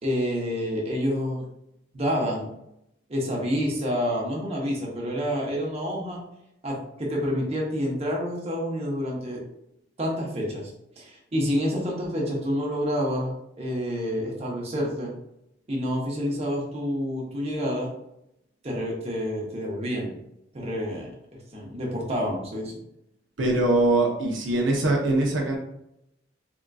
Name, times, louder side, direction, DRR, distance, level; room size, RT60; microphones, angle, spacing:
voice 1, 0.0-1.5 1.9-2.5 3.1-6.2 6.6-9.4 10.0-10.7 11.0-15.1 15.7-17.9 18.6-20.1 20.5-21.1 21.5-22.8, equal, 35° right, -3 dB, 0.8 m, -28 dB
voice 2, 23.4-25.6, right 2 dB, 80° right, 0 dB, 0.6 m, -22 dB
3.6 x 2.5 x 2.3 m, 0.82 s
head